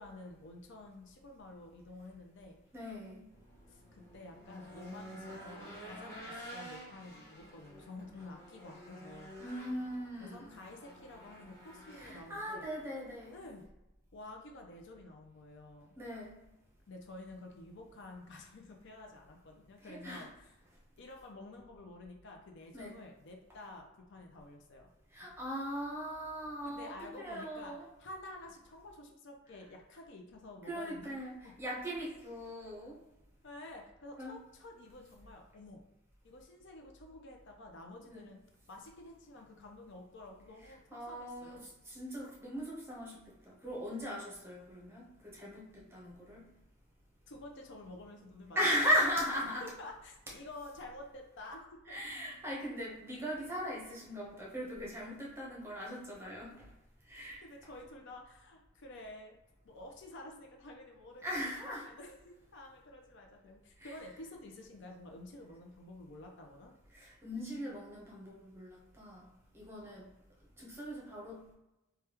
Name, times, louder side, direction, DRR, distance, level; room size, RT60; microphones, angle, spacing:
voice 1, 0.0-2.6 3.7-9.4 10.2-12.7 13.3-13.6 14.1-15.9 16.9-20.5 21.0-24.9 26.6-31.5 33.4-35.8 36.2-38.4 38.7-41.7 47.3-48.6 49.4-52.0 57.4-59.4 59.6-66.7, left 2 dB, 60° left, 2 dB, 0.5 m, -50 dB
voice 2, 2.7-3.3 9.4-10.6 11.9-13.3 16.0-16.4 19.8-20.3 22.7-22.9 25.1-27.9 30.7-33.0 34.2-34.4 38.1-38.2 40.9-46.5 48.5-49.6 51.9-56.7 57.1-57.4 61.2-61.8 63.8-63.9 66.9-69.3 69.5-70.1 70.6-71.5, equal, 10° right, -4 dB, 0.9 m, -38 dB
Race car auto racing / Engine, 3.3-13.4, equal, 15° left, 1.0 m, -51 dB
3.4 x 2.3 x 3.0 m, 0.97 s
head